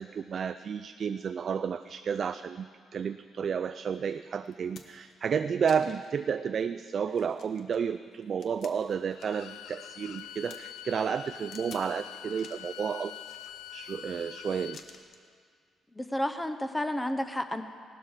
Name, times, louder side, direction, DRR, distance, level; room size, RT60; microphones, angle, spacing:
voice 1, 0.0-2.7 2.9-13.1 13.7-14.8, right 7 dB, 50° right, 9 dB, 0.3 m, -31 dB
sound 1, 3.9-4.0 4.5-5.1 5.7-6.2 6.6-6.7 7.1-9.5 9.8-10.6 11.5-11.9 12.3-12.7 13.2-13.9 14.7-15.3 16.3-16.5, left 5 dB, 65° left, 1.1 m, -52 dB
Bowed string instrument, 9.1-14.8, left 11 dB, 85° left, 0.4 m, -45 dB
voice 2, 15.9-17.6, left 1 dB, 10° left, 8 dB, 0.8 m, -31 dB
17.5 x 12.0 x 4.8 m, 2.1 s
cardioid pair, 90°, 0 cm